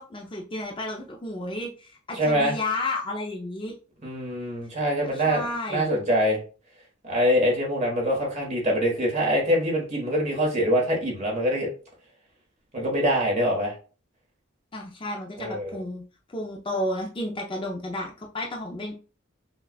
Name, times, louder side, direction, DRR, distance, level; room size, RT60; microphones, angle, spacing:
voice 1, 0.0-3.7 5.0-5.9 14.7-16.0 16.3-18.9, left 1 dB, 25° left, 0 dB, 0.5 m, -32 dB
voice 2, 2.1-2.6 4.0-5.4 5.7-6.4 7.0-11.7 12.7-13.7 15.4-15.8, equal, 35° right, -1 dB, 1.3 m, -24 dB
5.5 x 2.3 x 2.3 m, 0.37 s
head